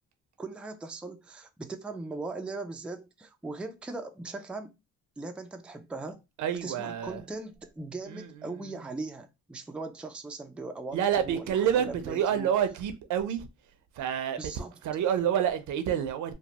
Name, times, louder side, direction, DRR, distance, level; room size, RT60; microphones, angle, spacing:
voice 1, 0.4-4.7 5.2-6.2 6.6-12.5 14.4-14.8, right 3 dB, 5° right, 0.3 m, -39 dB
voice 2, 6.4-7.2 8.1-8.3 10.9-13.5 14.0-14.4 14.8-16.3, right 9 dB, 75° right, 0.6 m, -28 dB
3.0 x 2.1 x 2.8 m
cardioid pair, 90°, 30 cm